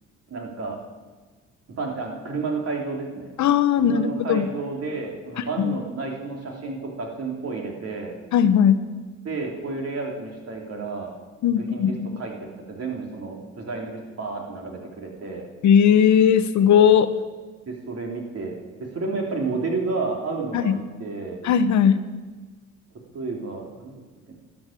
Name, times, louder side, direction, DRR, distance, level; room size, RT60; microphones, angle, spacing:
voice 1, 0.3-0.8 1.8-3.2 3.8-8.1 9.2-11.1 11.5-15.5 17.7-18.5 18.8-21.4 23.1-23.9 24.3-24.4, right 3 dB, 55° right, 0 dB, 3.2 m, -31 dB
voice 2, 3.4-4.5 5.6-5.8 8.3-8.8 11.4-12.1 15.6-17.1 20.5-20.8 21.4-22.0, left 8 dB, 70° left, 11 dB, 0.9 m, -18 dB
12.5 x 10.0 x 7.4 m, 1.3 s
cardioid pair, 90°, 30 cm